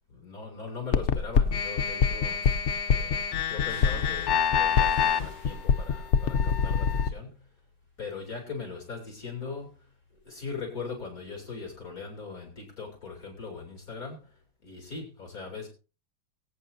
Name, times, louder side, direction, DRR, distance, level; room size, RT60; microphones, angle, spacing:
voice 1, 0.1-2.6 2.9-7.5 8.0-9.9 10.2-15.7, left 4 dB, 45° left, 0 dB, 3.4 m, -40 dB
sound 1, 0.9-7.1, left 7 dB, 70° left, 0.6 m, -25 dB
sound 2, 2.4-2.9 3.7-7.9 8.2-8.9 9.2-12.5 12.8-13.9 14.2-14.4, left 2 dB, 50° right, 3.8 m, -48 dB
22.5 x 8.8 x 2.7 m, 0.34 s
omnidirectional pair, 2.2 m